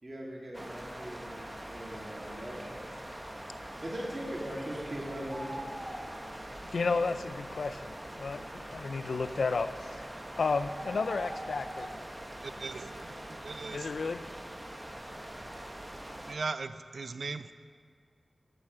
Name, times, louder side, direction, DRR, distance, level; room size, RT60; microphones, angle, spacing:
voice 1, 0.0-2.9 3.8-5.5, right 1 dB, 40° right, -3 dB, 2.7 m, -40 dB
sound 1, 0.5-16.3, right 1 dB, 15° right, 1.0 m, -43 dB
voice 2, 6.7-10.1 10.4-11.9 13.7-14.2, left 4 dB, 80° left, 11 dB, 0.4 m, -32 dB
voice 3, 12.4-13.9 16.3-17.5, right 4 dB, 75° right, 12 dB, 0.4 m, -39 dB
8.7 x 8.1 x 6.7 m, 2.1 s
cardioid pair, 55°, 0 cm